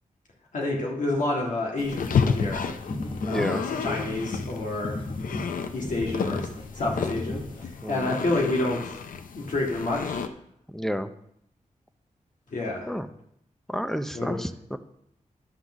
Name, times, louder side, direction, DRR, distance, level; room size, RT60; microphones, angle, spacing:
voice 1, 0.5-2.6 3.2-5.0 5.7-6.5 6.7-9.0 9.3-10.3 12.5-12.9 14.1-14.4, left 2 dB, 70° left, -2 dB, 1.7 m, -29 dB
sound 1, 1.8-10.3, left 6 dB, 90° left, 0.6 m, -31 dB
sound 2, 2.0-7.7, left 2 dB, 40° left, 1.0 m, -35 dB
voice 2, 3.2-3.6 7.8-8.1 10.7-11.1 12.9-13.1 13.7-14.8, equal, 5° left, 10 dB, 0.5 m, -30 dB
11.5 x 4.0 x 6.0 m, 0.74 s
wide cardioid pair, 95°, 14 cm